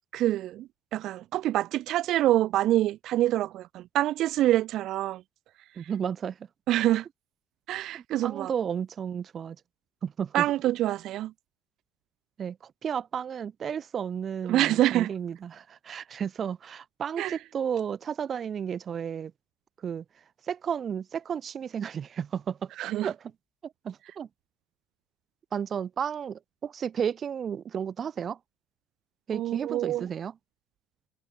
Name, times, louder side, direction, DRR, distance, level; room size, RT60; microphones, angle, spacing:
voice 1, 0.1-5.2 6.7-7.1 7.7-8.5 10.3-11.3 14.5-15.1 17.2-17.4 22.8-23.1 29.3-30.0, right 14 dB, 60° right, 7.1 m, -26 dB
voice 2, 5.8-6.4 7.9-9.6 10.0-10.4 12.4-19.3 19.8-20.0 20.5-22.7 23.0-23.2 23.8-24.3 25.5-28.4 29.3-30.3, right 8 dB, 40° right, 6.4 m, -33 dB
cardioid pair, 120°, 0 cm